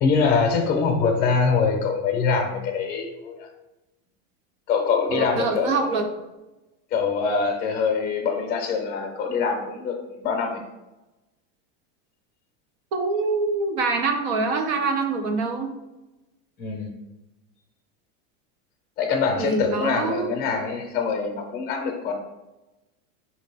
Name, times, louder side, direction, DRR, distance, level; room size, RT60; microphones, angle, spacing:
voice 1, 0.0-3.5 4.7-5.9 6.9-10.6 16.6-16.9 19.0-22.1, left 5 dB, 25° left, 2 dB, 0.8 m, -24 dB
voice 2, 5.1-6.1 12.9-15.7 19.4-20.3, right 3 dB, 40° right, 5 dB, 0.5 m, -25 dB
4.9 x 2.9 x 3.4 m, 1.0 s
supercardioid pair, 165°, 37 cm